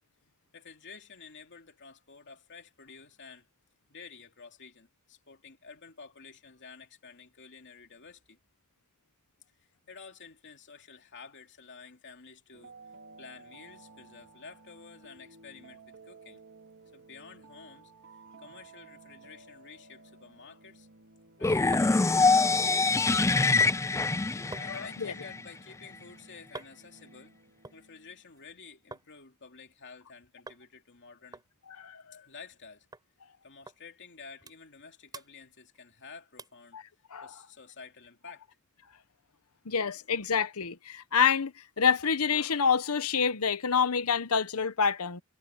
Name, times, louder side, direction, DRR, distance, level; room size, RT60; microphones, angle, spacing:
voice 1, 0.5-3.5 3.9-8.4 9.6-12.8 13.2-16.4 16.9-20.9 21.4-23.5 24.5-27.3 27.7-31.4 32.1-32.9 33.4-36.8 37.2-38.6 40.0-40.1, left 5 dB, 55° left, 3.1 m, -51 dB
sound 1, 12.5-28.2, right 3 dB, 60° right, 2.5 m, -56 dB
sound 2, 21.2-29.1 29.4-30.1 30.5-30.7 30.9-31.0 31.3-32.6 32.9-33.1 33.7-33.8 34.2-34.8 35.1-36.0 36.4-36.7 37.2-37.3, right 2 dB, 20° right, 5.2 m, -49 dB
sound 3, 21.4-25.4, left 3 dB, 15° left, 0.4 m, -24 dB
voice 2, 24.7-25.1 31.8-32.2 36.7-36.8 37.1-37.3 39.7-45.2, left 6 dB, 80° left, 1.0 m, -27 dB
head